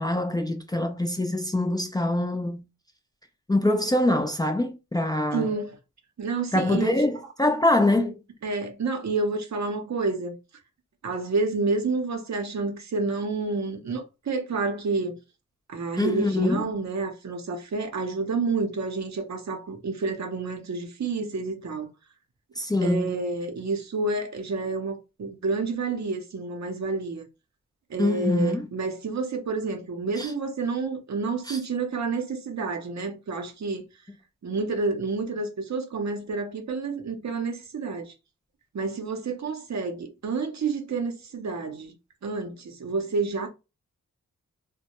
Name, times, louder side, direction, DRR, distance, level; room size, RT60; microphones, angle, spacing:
voice 1, 0.0-2.7 3.5-5.5 6.5-8.2 16.0-16.7 22.6-23.2 28.0-28.7 30.2-30.3 31.5-31.6, left 1 dB, 10° left, 0.4 m, -24 dB
voice 2, 5.3-5.7 6.2-6.9 8.4-10.3 11.0-15.2 15.7-21.9 22.8-27.2 27.9-33.8 34.4-38.1 38.7-41.9 42.2-43.5, right 4 dB, 55° right, 0.7 m, -29 dB
2.1 x 2.0 x 2.9 m
cardioid pair, 40°, 33 cm